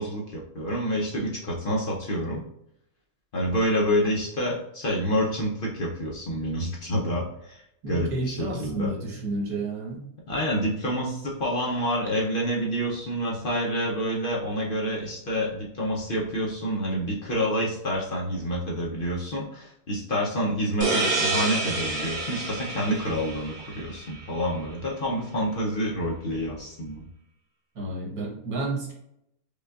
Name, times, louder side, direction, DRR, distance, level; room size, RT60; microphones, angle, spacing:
voice 1, 0.0-2.4 3.3-9.0 10.3-27.0, equal, 55° left, -3 dB, 0.6 m, -28 dB
voice 2, 7.8-10.0 27.7-28.9, right 2 dB, 75° right, -2 dB, 1.6 m, -31 dB
sound 1, 20.8-24.3, right 2 dB, 40° right, 0.8 m, -28 dB
5.1 x 2.3 x 2.3 m, 0.78 s
omnidirectional pair, 1.6 m